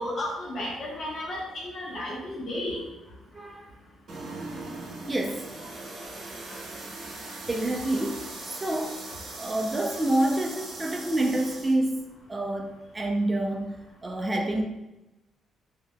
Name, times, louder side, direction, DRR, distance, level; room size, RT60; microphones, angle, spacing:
voice 1, 0.0-2.8 6.4-6.5, left 1 dB, 55° left, -5 dB, 1.2 m, -33 dB
voice 2, 3.3-3.7 5.1-5.5 7.5-9.0 9.4-12.0 12.3-14.6, right 1 dB, 20° right, 2 dB, 0.4 m, -28 dB
sound 1, 4.1-11.8, right 2 dB, 60° right, 0.8 m, -40 dB
3.6 x 2.7 x 2.2 m, 0.97 s
cardioid pair, 90°, 0 cm